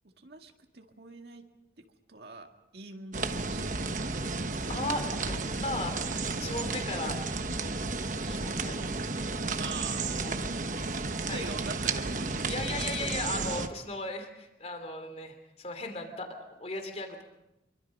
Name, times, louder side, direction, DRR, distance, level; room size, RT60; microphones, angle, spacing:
voice 1, 0.2-1.5 1.8-4.3 8.4-8.6 9.6-10.5 11.0-12.7, right 3 dB, 60° right, 4 dB, 1.9 m, -44 dB
sound 1, 3.1-13.7, right 3 dB, 45° right, 1.2 m, -33 dB
voice 2, 4.7-6.0 6.4-7.2 8.3-8.8 10.1-10.5 10.8-10.9 11.3-11.4 12.5-16.3 16.6-17.2, left 2 dB, 35° left, 6 dB, 3.0 m, -36 dB
26.5 x 23.5 x 5.3 m, 0.91 s
head